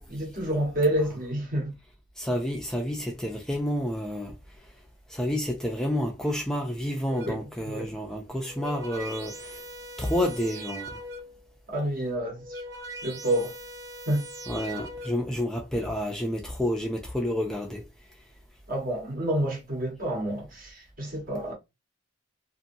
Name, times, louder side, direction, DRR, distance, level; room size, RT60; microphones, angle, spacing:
voice 1, 0.1-1.7 7.3-7.9 11.7-12.6 13.0-13.5 14.1-14.2 18.7-21.5, right 1 dB, 45° right, 1.2 m, -29 dB
voice 2, 2.2-4.3 5.1-9.3 10.0-10.8 14.5-17.8, left 1 dB, 5° left, 0.4 m, -29 dB
sound 1, 7.1-7.6 8.3-11.5 12.2-15.4, right 1 dB, 65° right, 0.6 m, -41 dB
2.7 x 2.6 x 2.6 m
head